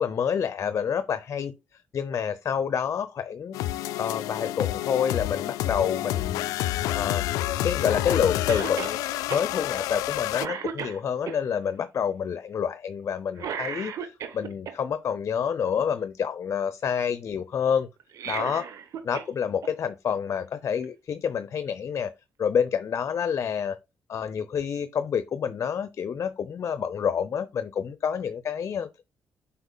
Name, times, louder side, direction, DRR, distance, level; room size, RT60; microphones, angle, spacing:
voice 1, 0.0-1.5 1.9-3.6 4.0-6.4 6.9-7.2 7.6-9.0 9.3-17.9 18.3-18.7 19.0-22.1 22.4-23.8 24.1-28.9, left 7 dB, 55° left, 0.7 m, -28 dB
sound 1, 3.5-10.5, left 14 dB, 90° left, 0.3 m, -28 dB
Cough, 8.5-9.0 9.3-9.5 9.9-10.1 10.4-11.4 13.4-14.7 18.0-19.3 19.6-19.7 20.8-20.9, right 7 dB, 70° right, 1.1 m, -34 dB
7.9 x 5.7 x 2.3 m
supercardioid pair, 60°, 6 cm